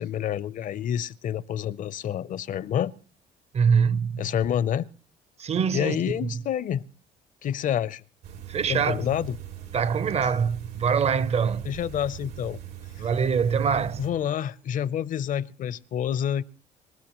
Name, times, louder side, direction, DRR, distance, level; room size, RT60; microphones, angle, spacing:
voice 1, 0.0-2.9 4.2-4.9 5.7-6.8 7.4-8.0 8.7-9.4 11.6-12.6 14.0-16.4, left 9 dB, 50° left, 0.6 m, -28 dB
voice 2, 3.5-4.2 5.4-6.0 8.5-9.1 9.7-11.7 13.0-14.0, right 6 dB, 40° right, 0.6 m, -24 dB
sound 1, 8.2-14.1, right 11 dB, 90° right, 3.1 m, -41 dB
26.5 x 13.0 x 3.0 m
cardioid pair, 110°, 17 cm